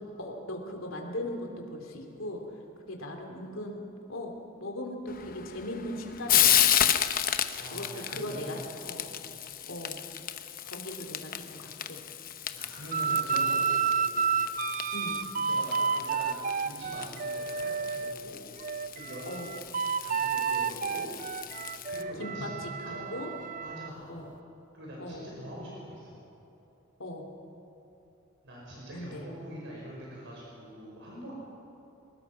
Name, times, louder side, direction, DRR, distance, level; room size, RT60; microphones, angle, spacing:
voice 1, 0.2-2.4 2.8-3.8 4.1-4.3 4.6-6.8 7.7-9.1 9.7-10.0 10.6-12.0 13.0-13.4 14.9-15.2 19.3-19.6 22.2-23.3 24.1-24.3 25.0-25.3 27.0-27.3 28.9-29.2, left 1 dB, 70° left, 2 dB, 3.1 m, -39 dB
Frying (food), 5.1-22.0, left 11 dB, 45° left, 0.9 m, -32 dB
voice 2, 7.6-8.6 9.1-9.3 12.5-14.3 15.2-18.4 18.9-19.2 20.0-21.1 21.9-22.6 22.9-23.1 23.6-24.2 24.7-26.2 28.4-31.3, equal, 60° right, -4 dB, 5.3 m, -44 dB
sound 1, 12.9-18.2 18.6-23.9, right 6 dB, 40° right, 0.5 m, -31 dB
23.5 x 20.0 x 5.9 m, 3.0 s
head